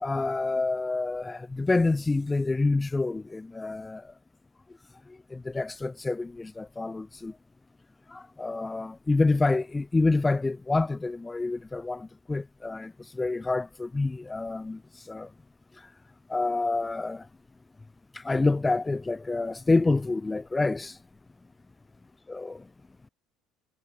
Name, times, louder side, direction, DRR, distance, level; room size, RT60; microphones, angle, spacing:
voice 1, 0.0-4.0 5.3-7.3 8.1-14.8 15.1-15.3 16.3-17.2 18.1-21.0 22.3-22.6, left 3 dB, 10° left, 0.8 m, -27 dB
cardioid pair, 135°, 0 cm